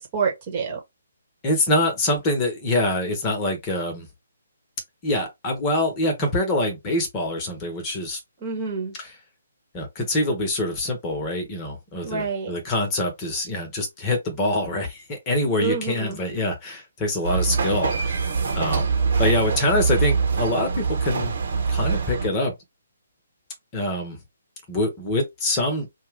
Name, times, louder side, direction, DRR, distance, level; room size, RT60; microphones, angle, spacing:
voice 1, 0.1-0.8 8.4-8.9 12.0-12.5 15.6-16.2, right 5 dB, 35° right, 1.2 m, -27 dB
voice 2, 1.4-4.1 5.0-8.2 9.0-9.1 9.7-18.2 18.5-18.9 19.2-21.3 21.7-22.5 23.7-24.2 24.7-25.9, left 1 dB, 25° left, 1.0 m, -25 dB
sound 1, 17.2-22.3, right 5 dB, 55° right, 1.1 m, -24 dB
2.6 x 2.3 x 3.3 m
figure-of-eight pair, 135°, 0 cm